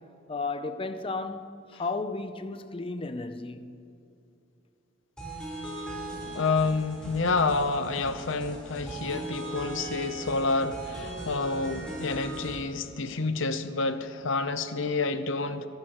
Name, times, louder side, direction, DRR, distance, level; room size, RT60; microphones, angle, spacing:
voice 1, 0.3-3.8, left 3 dB, 25° left, 0.5 m, -34 dB
sound 1, 5.2-12.6, right 1 dB, 5° left, 3.9 m, -39 dB
voice 2, 6.3-15.7, left 3 dB, 60° left, 0.7 m, -28 dB
27.0 x 11.5 x 3.0 m
head